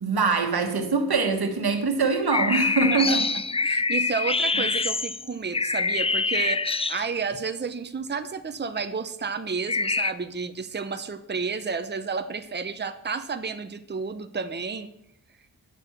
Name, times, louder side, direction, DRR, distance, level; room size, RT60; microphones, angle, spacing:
voice 1, 0.0-3.4, right 4 dB, 85° right, 6 dB, 1.3 m, -23 dB
sound 1, 2.3-7.4 9.7-10.1, left 4 dB, 15° left, 0.3 m, -25 dB
voice 2, 3.6-14.9, right 5 dB, 30° right, 9 dB, 0.7 m, -31 dB
9.1 x 6.5 x 6.4 m, 0.80 s
wide cardioid pair, 55°, 37 cm